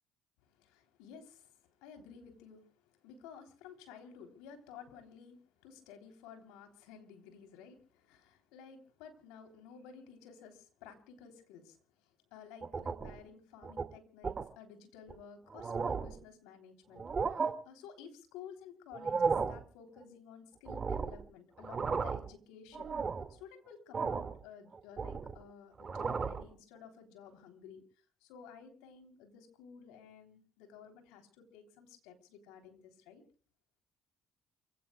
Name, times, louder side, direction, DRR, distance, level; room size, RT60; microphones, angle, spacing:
voice 1, 0.4-11.8 12.0-17.0 17.3-22.9 23.3-27.8 28.2-33.2, left 7 dB, 80° left, 5 dB, 3.3 m, -54 dB
sound 1, 12.6-13.2 13.6-13.9 14.2-14.5 15.1-15.2 15.5-16.2 17.0-17.5 18.9-19.6 20.7-21.2 21.6-22.3 22.7-23.3 23.9-24.4 24.7-25.4 25.8-26.5, right 5 dB, 35° right, 2.0 m, -34 dB
29.0 x 17.0 x 2.3 m, 0.40 s
hypercardioid pair, 65°, 0 cm